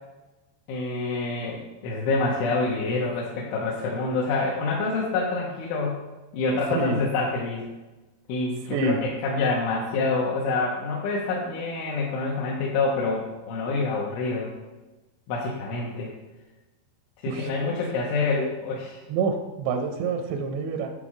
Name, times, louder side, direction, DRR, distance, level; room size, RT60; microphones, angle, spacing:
voice 1, 0.7-6.0 6.3-7.7 8.3-14.5 15.3-16.1 17.2-19.0, left 3 dB, 85° left, -4 dB, 3.3 m, -27 dB
voice 2, 17.3-17.8 18.3-18.5 19.1-20.9, right 4 dB, 85° right, 4 dB, 2.4 m, -27 dB
9.0 x 3.6 x 4.9 m, 1.1 s
omnidirectional pair, 5.5 m